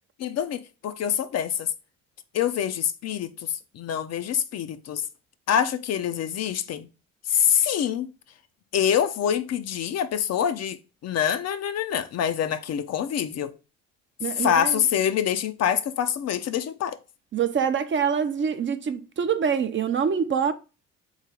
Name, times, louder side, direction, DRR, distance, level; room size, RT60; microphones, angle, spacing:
voice 1, 0.2-1.7 2.3-5.0 5.5-6.9 7.3-8.1 8.7-10.8 11.0-13.5 14.4-17.0, left 9 dB, 45° left, 0.5 m, -25 dB
voice 2, 14.2-14.8 17.3-20.5, right 7 dB, 30° right, 0.6 m, -25 dB
4.0 x 3.2 x 3.7 m
hypercardioid pair, 50°, 37 cm